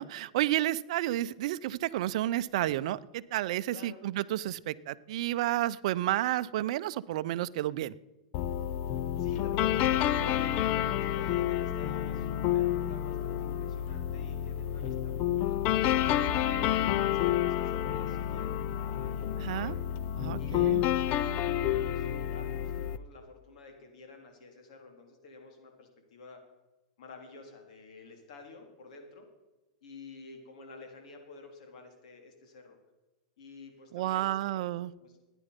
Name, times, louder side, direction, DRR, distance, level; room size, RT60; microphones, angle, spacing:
voice 1, 0.0-7.9 19.4-19.8 20.2-20.8 33.9-34.9, right 14 dB, 65° right, 15 dB, 0.5 m, -31 dB
voice 2, 3.7-4.0 9.2-16.6 17.1-19.8 20.3-26.4 27.0-29.3 29.8-32.8 33.4-34.7 35.0-35.2, left 4 dB, 70° left, 3 dB, 3.5 m, -50 dB
sound 1, 8.3-23.0, left 11 dB, 40° left, 0.6 m, -29 dB
15.0 x 10.0 x 5.2 m, 1.1 s
hypercardioid pair, 130°, 4 cm